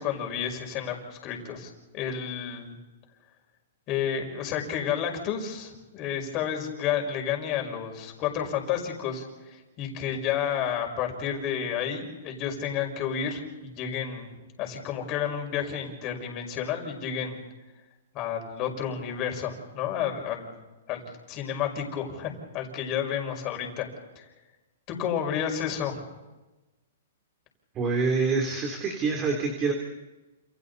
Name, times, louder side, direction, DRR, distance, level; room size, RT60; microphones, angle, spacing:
voice 1, 0.0-2.8 3.9-9.3 9.8-14.3 14.6-17.4 18.1-20.6 20.9-21.0 21.3-23.9 24.2-24.3 24.9-26.0, left 8 dB, 30° left, 2 dB, 5.6 m, -31 dB
voice 2, 27.7-29.7, right 4 dB, 25° right, 3 dB, 3.5 m, -26 dB
29.0 x 29.0 x 4.2 m, 1.1 s
hypercardioid pair, 145°, 0 cm